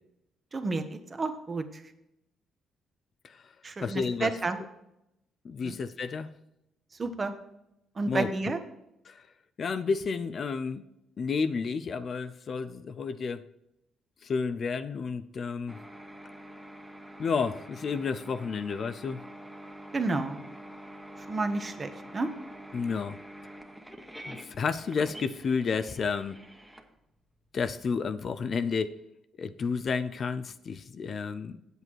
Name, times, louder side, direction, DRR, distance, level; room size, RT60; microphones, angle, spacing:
voice 1, 0.5-1.6 3.6-4.6 5.6-5.8 7.0-7.3 8.0-8.6 19.9-20.4 21.3-22.3, right 3 dB, 35° right, 8 dB, 1.0 m, -30 dB
voice 2, 3.8-4.4 5.4-6.3 8.1-8.5 9.1-9.2 9.6-10.8 11.2-13.5 14.2-15.8 17.2-19.2 22.7-23.2 24.3-26.4 27.5-28.9 29.4-31.6, left 5 dB, 50° left, 11 dB, 0.5 m, -31 dB
sound 1, 15.7-27.7, equal, 5° right, 1.1 m, -46 dB
8.1 x 8.1 x 4.5 m, 0.84 s
cardioid pair, 90°, 0 cm